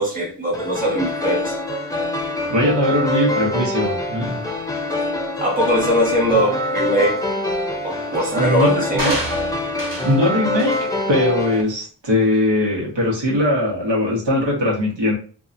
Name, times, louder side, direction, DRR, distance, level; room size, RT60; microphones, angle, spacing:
voice 1, 0.0-1.5 5.4-7.2 7.8-9.1, equal, 20° right, -4 dB, 1.1 m, -21 dB
sound 1, 0.5-11.6, left 2 dB, 10° left, 0.5 m, -25 dB
voice 2, 2.5-4.4 8.2-9.2 10.0-10.8 11.1-15.1, left 1 dB, 90° right, -4 dB, 1.0 m, -20 dB
sound 2, 9.0-10.2 10.6-10.9 11.4-11.5, right 1 dB, 50° right, 1.2 m, -28 dB
2.6 x 2.2 x 2.5 m, 0.42 s
wide cardioid pair, 60°, 42 cm